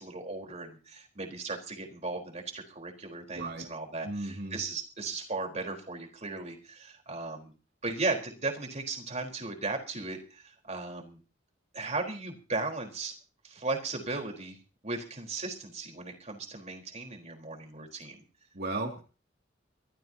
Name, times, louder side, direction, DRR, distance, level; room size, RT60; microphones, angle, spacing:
voice 1, 0.0-7.5 7.8-11.2 11.7-13.1 13.4-14.6 14.8-18.2, right 3 dB, 35° right, 2 dB, 4.2 m, -36 dB
voice 2, 3.3-3.7 4.0-4.6 18.5-19.0, right 2 dB, 50° right, 2 dB, 2.6 m, -35 dB
24.5 x 14.5 x 2.9 m, 0.35 s
head